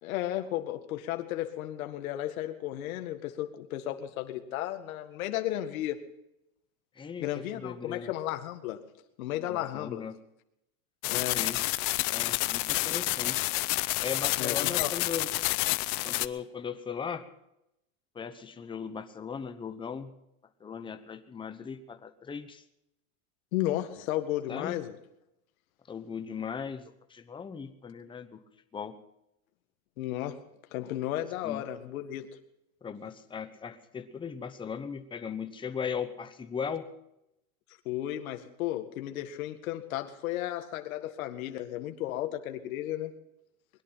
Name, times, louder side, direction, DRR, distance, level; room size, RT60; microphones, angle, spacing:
voice 1, 0.0-6.0 7.2-8.8 9.2-10.0 11.1-11.4 14.4-14.9 23.5-25.0 30.0-30.4 30.7-32.3 37.9-43.1, left 13 dB, 75° left, 6 dB, 1.9 m, -34 dB
voice 2, 7.0-8.1 9.5-10.1 11.1-11.6 12.1-13.5 14.0-15.3 16.0-17.3 18.1-20.1 20.6-22.6 24.5-24.7 25.9-28.4 28.7-29.0 31.4-31.7 32.8-36.9, left 6 dB, 10° left, 9 dB, 1.0 m, -38 dB
sound 1, 11.0-16.3, left 22 dB, 45° left, 0.7 m, -29 dB
21.0 x 11.5 x 5.7 m, 0.83 s
supercardioid pair, 150°, 42 cm